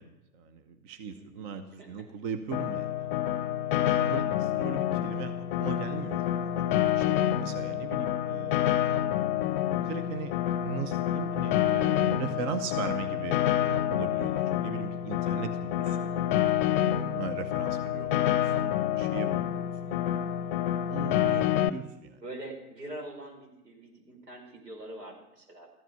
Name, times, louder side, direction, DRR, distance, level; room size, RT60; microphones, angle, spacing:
voice 1, 0.0-3.2 3.7-6.6 6.9-8.6 9.7-16.1 16.7-20.4 20.9-22.2, right 6 dB, 35° right, 9 dB, 0.9 m, -39 dB
voice 2, 1.1-2.0 4.3-4.5 7.7-7.9 15.8-16.4 21.0-21.3 22.2-25.8, right 1 dB, 80° right, 1 dB, 4.6 m, -45 dB
Piano, 2.5-21.7, left 11 dB, 40° left, 0.8 m, -28 dB
14.0 x 12.0 x 5.7 m, 0.93 s
figure-of-eight pair, 100°, 48 cm